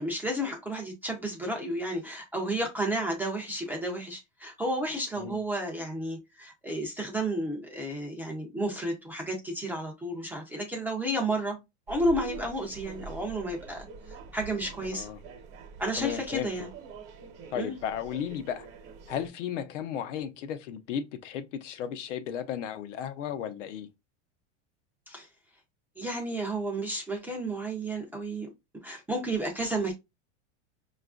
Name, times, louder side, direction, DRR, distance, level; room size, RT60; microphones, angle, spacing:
voice 1, 0.0-11.6 11.9-15.1 15.8-16.7 17.6-17.7 25.1-25.3 26.0-28.5 28.8-30.0, right 1 dB, 5° right, 0.3 m, -32 dB
sound 1, 11.9-19.3, right 5 dB, 55° right, 0.9 m, -45 dB
voice 2, 16.0-16.5 17.5-18.7 19.1-23.9, left 9 dB, 85° left, 0.7 m, -34 dB
5.0 x 2.4 x 2.3 m
supercardioid pair, 150°, 36 cm